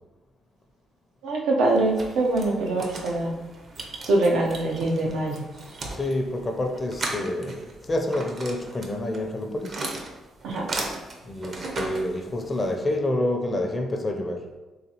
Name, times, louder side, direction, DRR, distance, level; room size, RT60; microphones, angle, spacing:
voice 1, 1.2-3.3 4.1-5.4 10.4-10.7, right 2 dB, 90° right, -1 dB, 0.7 m, -23 dB
sound 1, 1.7-12.7, right 2 dB, 50° right, 0.7 m, -37 dB
voice 2, 5.9-9.8 11.2-14.5, left 1 dB, 30° left, 3 dB, 0.5 m, -28 dB
4.0 x 3.1 x 2.9 m, 1.1 s
cardioid pair, 90°, 0 cm